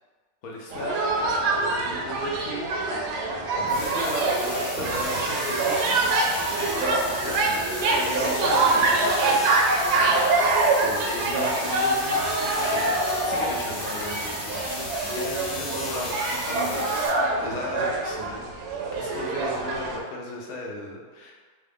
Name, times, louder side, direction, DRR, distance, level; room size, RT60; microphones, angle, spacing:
voice 1, 0.4-2.7 3.5-6.0 6.3-9.4 9.9-10.2 10.6-14.9 15.1-21.3, left 2 dB, 65° left, -2 dB, 1.0 m, -36 dB
sound 1, 0.7-20.0, right 2 dB, 75° right, 1.0 m, -25 dB
sound 2, 3.7-17.1, left 1 dB, 25° left, 1.1 m, -35 dB
3.8 x 2.5 x 3.4 m, 1.5 s
omnidirectional pair, 1.9 m